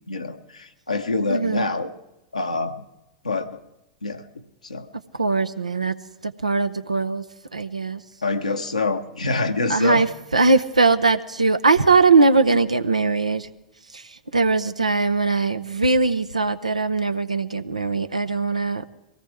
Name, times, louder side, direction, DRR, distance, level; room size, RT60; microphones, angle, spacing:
voice 1, 0.1-1.9 2.3-2.8 3.2-3.6 4.0-4.9 8.2-10.0, left 3 dB, 85° left, 5 dB, 1.1 m, -26 dB
voice 2, 1.3-1.7 5.2-5.9 6.2-7.2 7.5-8.0 9.7-10.1 10.3-13.5 14.3-18.8, right 3 dB, 85° right, 11 dB, 0.7 m, -20 dB
22.5 x 17.5 x 3.6 m, 0.92 s
figure-of-eight pair, 95°, 4 cm